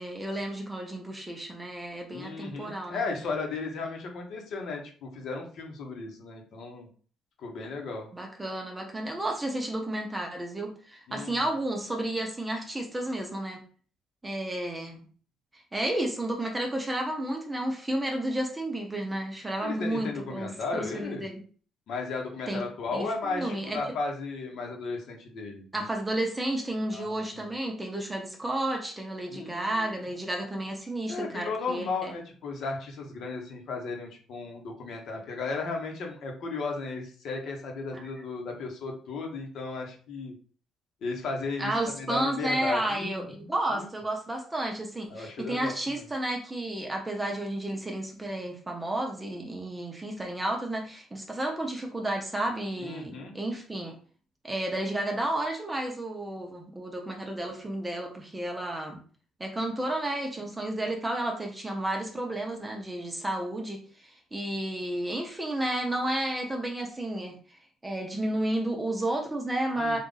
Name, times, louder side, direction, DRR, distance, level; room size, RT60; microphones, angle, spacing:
voice 1, 0.0-3.0 8.1-13.6 14.2-15.0 15.7-21.4 22.5-22.6 22.9-23.8 25.7-32.1 37.9-38.0 41.6-54.0 54.4-59.0 59.4-67.3 67.8-70.0, right 1 dB, 10° right, 2 dB, 0.8 m, -32 dB
voice 2, 2.1-6.9 7.4-8.1 11.1-11.4 19.6-21.2 21.9-25.8 26.9-27.4 29.3-29.9 31.1-40.3 41.0-43.8 45.1-46.1 52.8-53.3 69.8-70.0, left 3 dB, 60° left, 1 dB, 1.2 m, -35 dB
3.7 x 2.6 x 3.9 m, 0.42 s
cardioid pair, 125°, 0 cm